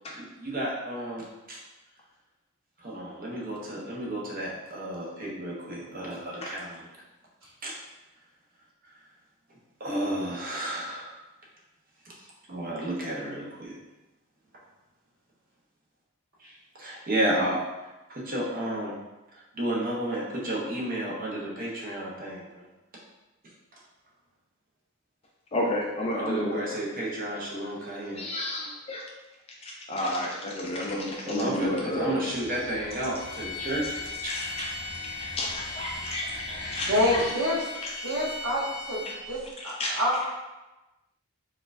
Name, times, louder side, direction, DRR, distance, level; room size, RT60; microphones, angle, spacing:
voice 1, 0.2-1.6 2.8-6.9 7.6-7.7 8.8-9.0 9.8-11.1 12.0-13.8 16.4-17.6 18.1-18.9 19.3-22.7 23.4-23.8 26.1-28.3 31.3-34.7, right 1 dB, 40° right, -4 dB, 0.7 m, -32 dB
voice 2, 25.5-26.6 27.3-27.4 28.1-29.0 29.6-32.5 34.3-34.7 35.2-37.3 37.8-38.3 39.6-39.9, left 1 dB, 25° left, -2 dB, 0.4 m, -32 dB
sound 1, 31.6-37.3, equal, 90° right, 0.7 m, -43 dB
sound 2, 33.2-39.4, left 4 dB, 85° left, 0.6 m, -38 dB
voice 3, 36.9-37.6 38.0-38.6 38.9-39.0 39.3-39.4 39.6-40.3, left 1 dB, 60° right, -6 dB, 1.0 m, -26 dB
4.2 x 2.3 x 2.5 m, 1.0 s
head